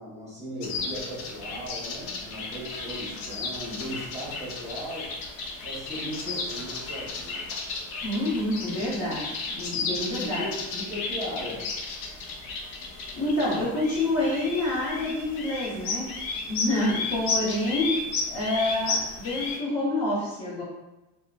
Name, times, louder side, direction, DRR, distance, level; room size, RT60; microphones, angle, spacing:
voice 1, 0.0-5.1 5.6-7.5 9.7-11.7, equal, 15° right, -7 dB, 1.1 m, -37 dB
sound 1, 0.6-19.6, left 3 dB, 60° left, 0.7 m, -34 dB
voice 2, 8.0-10.4 13.2-16.1 16.5-17.9 18.3-20.6, left 1 dB, 40° left, -7 dB, 0.9 m, -27 dB
2.7 x 2.3 x 2.3 m, 1.0 s
supercardioid pair, 120°, 40 cm